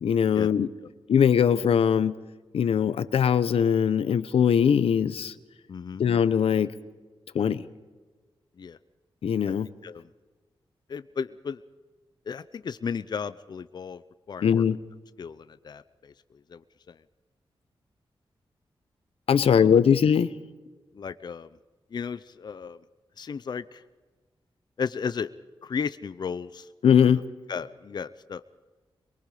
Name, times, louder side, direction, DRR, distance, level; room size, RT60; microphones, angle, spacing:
voice 1, 0.0-0.7 1.1-2.1 2.5-5.3 6.0-6.7 7.3-7.6 9.2-9.7 14.4-14.8 19.3-20.3 26.8-27.2, left 7 dB, 90° left, 14 dB, 0.8 m, -21 dB
voice 2, 5.7-6.0 8.6-8.8 9.8-10.1 10.9-11.6 12.3-14.0 14.3-14.6 15.2-16.1 16.5-16.6 16.9-17.0 19.4-19.7 20.9-21.5 21.9-22.8 23.2-23.8 24.8-25.3 25.6-26.7 27.1-27.2 27.5-28.5, left 6 dB, 50° left, 13 dB, 0.6 m, -34 dB
23.0 x 23.0 x 5.0 m, 1.3 s
wide cardioid pair, 155°, 10 cm